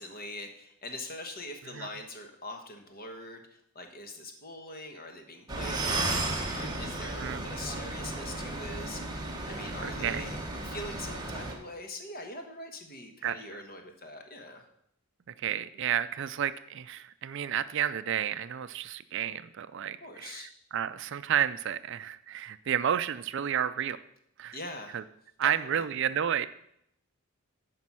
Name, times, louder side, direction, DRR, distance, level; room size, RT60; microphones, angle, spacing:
voice 1, 0.0-10.4 10.6-14.7 20.0-20.5 24.5-25.0 25.4-25.8, left 1 dB, 40° left, 4 dB, 1.3 m, -43 dB
sound 1, 5.5-11.5, right 2 dB, 20° right, 1.2 m, -34 dB
voice 2, 9.8-10.2 13.2-13.3 15.4-24.0 24.4-24.6 24.9-25.0 25.4-26.5, right 9 dB, 55° right, 14 dB, 0.4 m, -31 dB
9.7 x 5.3 x 6.1 m, 0.74 s
head